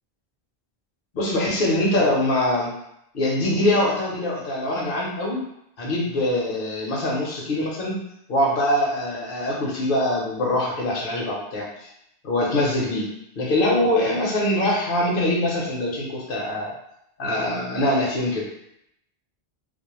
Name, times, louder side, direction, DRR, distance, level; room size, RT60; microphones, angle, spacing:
voice 1, 1.1-2.7 3.1-5.4 5.8-8.0 8.3-11.7 12.2-13.1 13.4-16.7 17.2-18.5, left 1 dB, 60° left, -3 dB, 0.8 m, -23 dB
2.3 x 2.0 x 3.0 m, 0.78 s
omnidirectional pair, 1.0 m